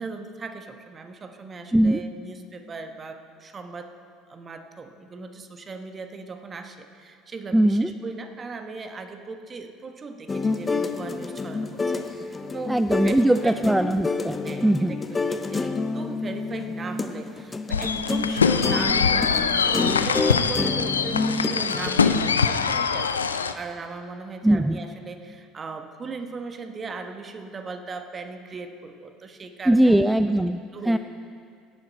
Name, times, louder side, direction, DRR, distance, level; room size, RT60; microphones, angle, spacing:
voice 1, 0.0-3.9 4.3-13.1 13.4-13.6 14.4-30.1 30.7-31.0, right 4 dB, 30° right, 6 dB, 1.2 m, -38 dB
voice 2, 7.5-7.9 12.7-14.4 14.6-15.0 24.4-24.8 29.7-30.6 30.8-31.0, right 1 dB, 5° right, 11 dB, 0.4 m, -20 dB
Funky tune, 10.3-22.3, left 3 dB, 25° left, 0.8 m, -29 dB
sound 1, 17.7-23.5, left 6 dB, 90° left, 0.4 m, -23 dB
17.0 x 9.9 x 4.3 m, 2.4 s
hypercardioid pair, 65°, 0 cm